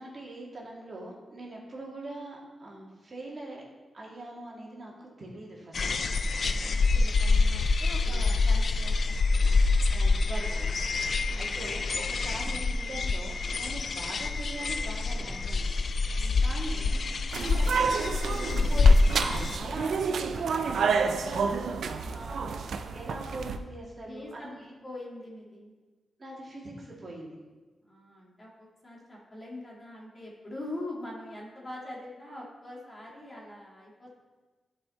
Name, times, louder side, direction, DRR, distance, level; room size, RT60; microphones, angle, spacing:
voice 1, 0.0-3.6 3.9-5.9 8.1-8.3 9.9-10.8 11.4-15.7 16.4-22.6 22.9-24.7 26.2-27.4, right 2 dB, 35° right, -3 dB, 1.8 m, -42 dB
sound 1, 5.7-19.6, left 3 dB, 50° left, 0.4 m, -26 dB
voice 2, 6.6-9.5 11.3-11.6 16.1-16.5 24.0-24.5 24.8-25.7 27.8-34.2, left 1 dB, 30° left, -4 dB, 2.0 m, -43 dB
sound 2, 17.3-23.6, right 5 dB, 85° right, 0.5 m, -30 dB
12.5 x 4.8 x 4.1 m, 1.3 s
wide cardioid pair, 135°, 0 cm